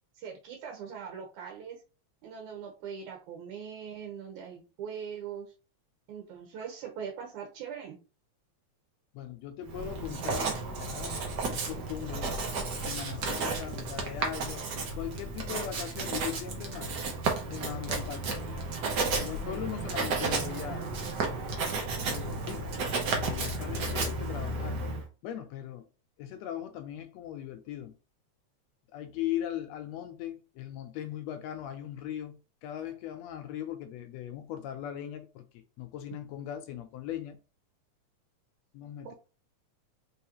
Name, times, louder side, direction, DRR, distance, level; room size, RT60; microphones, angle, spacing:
voice 1, 0.2-1.8 2.2-5.5 6.1-8.0 39.0-39.1, right 7 dB, 85° right, 2.4 m, -41 dB
voice 2, 9.1-11.2 11.5-12.3 12.8-16.9 17.5-18.6 19.2-20.9 22.1-22.7 23.2-24.8 25.2-25.9 26.2-28.0 28.9-37.4 38.7-39.1, left 11 dB, 75° left, 1.8 m, -39 dB
Writing, 9.7-25.0, right 3 dB, 65° right, 1.0 m, -33 dB
4.7 x 3.8 x 2.9 m
omnidirectional pair, 3.3 m